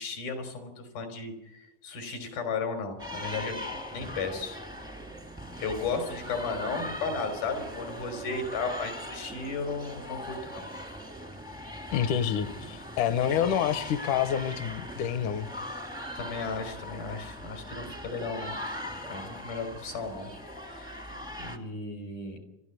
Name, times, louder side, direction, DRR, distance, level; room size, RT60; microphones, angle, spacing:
voice 1, 0.0-3.6 3.9-4.6 5.6-10.7 13.4-13.5 16.2-18.5 19.1-20.3 20.6-21.1 21.4-22.4, left 4 dB, 90° left, 6 dB, 5.6 m, -35 dB
sound 1, 3.0-21.6, left 1 dB, 5° right, 0.3 m, -40 dB
voice 2, 11.9-15.5, left 9 dB, 75° left, 12 dB, 2.2 m, -28 dB
28.0 x 13.5 x 8.1 m, 0.96 s
omnidirectional pair, 4.1 m